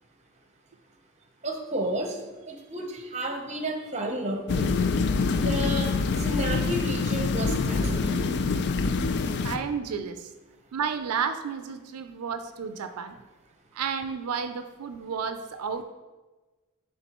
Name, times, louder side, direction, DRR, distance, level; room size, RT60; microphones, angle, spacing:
voice 1, 1.4-2.2 2.5-4.7 5.3-5.9 6.2-8.3, equal, 30° right, 4 dB, 0.8 m, -31 dB
sound 1, 4.5-9.6, left 4 dB, 50° left, 0.4 m, -25 dB
voice 2, 9.4-10.3 10.7-13.2 13.7-15.8, right 6 dB, 85° right, 9 dB, 0.4 m, -32 dB
11.0 x 3.7 x 3.0 m, 1.2 s
head